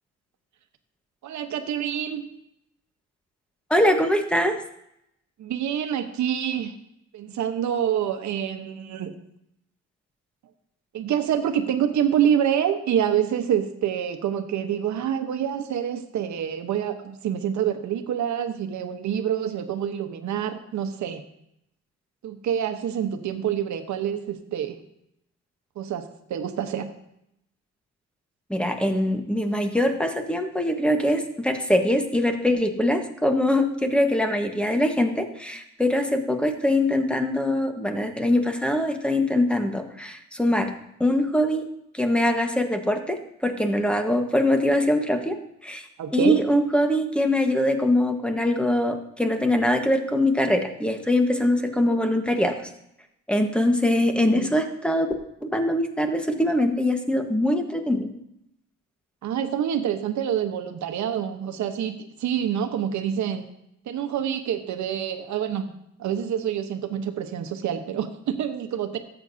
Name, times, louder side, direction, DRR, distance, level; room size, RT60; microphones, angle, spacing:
voice 1, 1.2-2.2 5.4-6.7 7.1-9.2 10.9-21.2 22.2-24.8 25.8-26.9 46.0-46.4 54.3-54.5 59.2-63.5 63.9-65.7 66.0-69.0, right 9 dB, 70° right, 8 dB, 1.1 m, -27 dB
voice 2, 3.7-4.6 28.5-40.7 41.0-41.6 41.9-52.7 53.3-58.1, left 1 dB, 5° left, 5 dB, 1.3 m, -23 dB
13.5 x 8.1 x 2.7 m, 0.78 s
cardioid pair, 90°, 30 cm